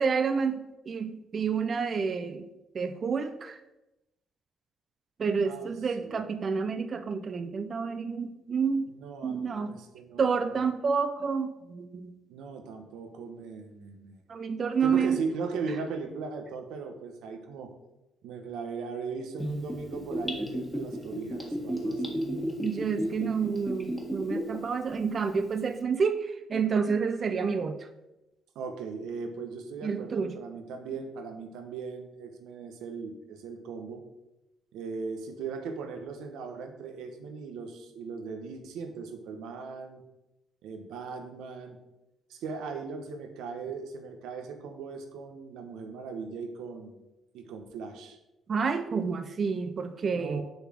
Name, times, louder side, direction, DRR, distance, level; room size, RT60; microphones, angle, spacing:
voice 1, 0.0-2.5 2.7-3.6 5.2-8.9 9.2-9.8 10.2-12.1 14.3-15.2 22.6-27.8 29.8-30.3 48.5-50.4, right 5 dB, 45° right, 9 dB, 0.5 m, -29 dB
voice 2, 9.0-10.6 12.3-14.2 14.8-17.7 18.2-22.6 28.5-34.0 34.7-40.0 40.6-41.8 42.3-47.0 47.3-48.2 50.1-50.4, right 4 dB, 90° right, 6 dB, 1.0 m, -38 dB
Gurgling / Bathtub (filling or washing), 19.4-24.5 24.9-25.0, equal, 5° left, 1.6 m, -32 dB
6.8 x 4.0 x 6.2 m, 0.96 s
cardioid pair, 90°, 0 cm